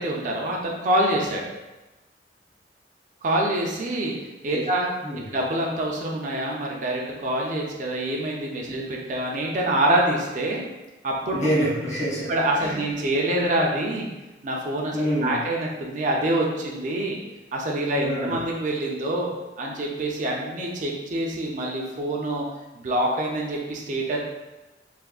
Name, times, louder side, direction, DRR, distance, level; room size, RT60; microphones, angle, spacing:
voice 1, 0.0-1.5 3.2-4.2 4.4-4.9 5.3-10.6 11.0-11.4 12.3-14.1 14.4-17.2 17.5-19.3 19.6-22.4 22.7-24.2, right 1 dB, 45° right, -2 dB, 0.5 m, -26 dB
voice 2, 11.3-12.3 12.6-12.8 14.9-15.4 17.9-18.4, equal, 40° left, -7 dB, 1.0 m, -26 dB
3.3 x 2.1 x 2.3 m, 1.1 s
head